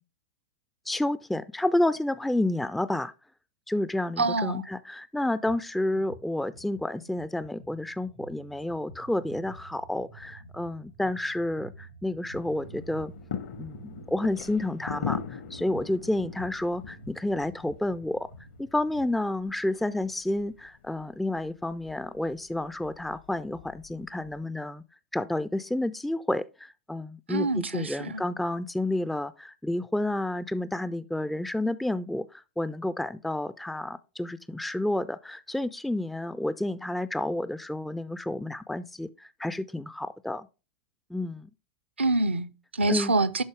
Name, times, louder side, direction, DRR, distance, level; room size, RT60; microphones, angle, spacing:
voice 1, 0.9-3.1 3.7-13.1 13.6-18.3 18.6-24.8 25.1-40.5 41.1-41.5 42.9-43.1, left 1 dB, ahead, 0.3 m, -30 dB
voice 2, 4.2-4.7 27.3-28.2 42.0-43.4, right 2 dB, 75° right, 0.5 m, -26 dB
sound 1, 5.5-5.6 5.9-19.2, right 1 dB, 75° left, 4.3 m, -49 dB
sound 2, 12.3-24.4, left 7 dB, 55° left, 0.8 m, -41 dB
11.5 x 4.0 x 3.5 m
figure-of-eight pair, 95°, 6 cm